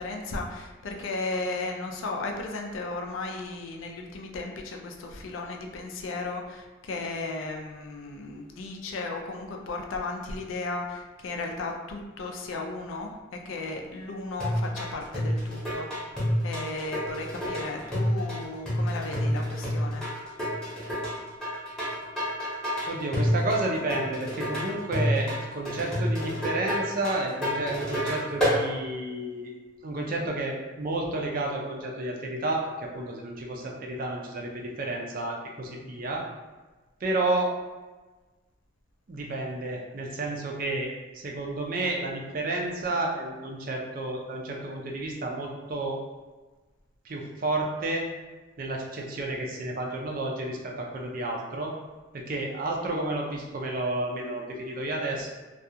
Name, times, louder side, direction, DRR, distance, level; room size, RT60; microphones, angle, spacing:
voice 1, 0.0-15.9 16.4-20.0, left 3 dB, 90° left, 2 dB, 0.4 m, -35 dB
sound 1, 14.4-28.6, equal, 5° left, 0.8 m, -29 dB
voice 2, 22.9-29.5 29.8-36.2 37.0-37.5 39.1-46.0 47.0-48.1 48.6-51.7 52.1-55.3, right 2 dB, 45° right, 0 dB, 0.4 m, -31 dB
2.4 x 2.3 x 2.7 m, 1.2 s
head